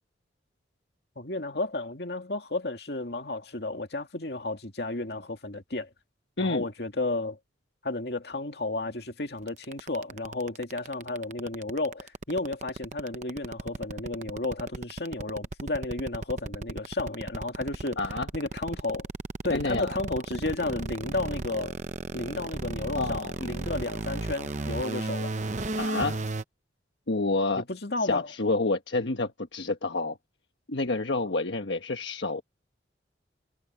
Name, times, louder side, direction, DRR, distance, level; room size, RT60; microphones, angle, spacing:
voice 1, 1.2-5.9 6.4-7.4 7.8-18.0 18.3-19.1 19.4-21.7 22.1-25.3 27.6-28.3, left 2 dB, 60° left, 2.3 m, -32 dB
sound 1, 9.5-26.4, right 2 dB, 40° right, 0.8 m, -34 dB
voice 2, 18.0-18.3 19.5-20.0 22.9-23.3 25.8-26.2 27.1-27.6 28.0-30.2 30.7-32.4, left 3 dB, 80° left, 1.3 m, -28 dB
head